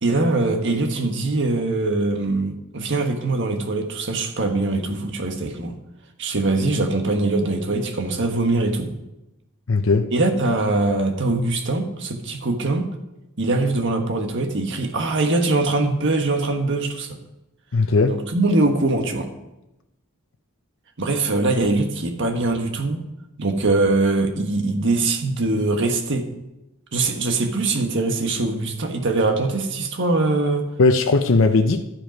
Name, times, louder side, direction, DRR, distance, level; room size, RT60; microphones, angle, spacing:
voice 1, 0.0-5.8 6.2-8.9 10.1-12.9 13.4-17.2 18.1-19.3 21.0-23.0 23.4-26.3 26.9-30.7, right 2 dB, 60° right, 4 dB, 1.4 m, -22 dB
voice 2, 9.7-10.1 17.7-18.2 30.8-31.8, left 3 dB, 70° left, 6 dB, 0.7 m, -17 dB
12.0 x 7.7 x 5.3 m, 0.93 s
head